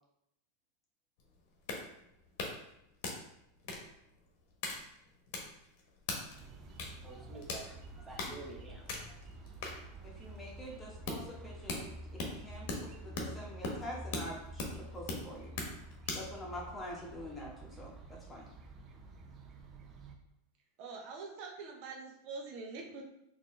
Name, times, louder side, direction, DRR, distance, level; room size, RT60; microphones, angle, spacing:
sound 1, 1.2-16.4, left 3 dB, 60° left, 1.0 m, -42 dB
sound 2, 6.3-20.2, right 1 dB, 35° right, 0.7 m, -49 dB
voice 1, 7.0-9.2, right 3 dB, 15° right, -1 dB, 1.0 m, -50 dB
voice 2, 10.0-11.9 12.2-12.7 12.9-15.5 16.1-17.9 18.3-18.5, equal, 20° left, -2 dB, 1.4 m, -45 dB
voice 3, 20.8-23.0, right 4 dB, 55° right, 0 dB, 0.9 m, -44 dB
4.1 x 2.9 x 3.3 m, 0.80 s
hypercardioid pair, 100°, 0 cm